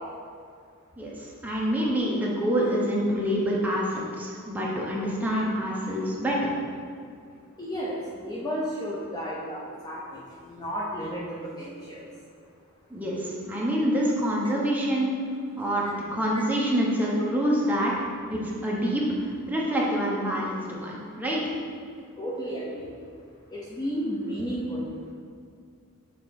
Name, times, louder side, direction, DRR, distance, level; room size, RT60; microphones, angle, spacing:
voice 1, 1.0-6.5 12.9-15.1 15.6-17.9 18.3-21.5, equal, 10° right, -5 dB, 0.9 m, -26 dB
voice 2, 7.6-12.1 22.2-22.9 23.5-24.9, equal, 20° left, -5 dB, 0.6 m, -33 dB
6.7 x 3.9 x 4.0 m, 2.2 s
head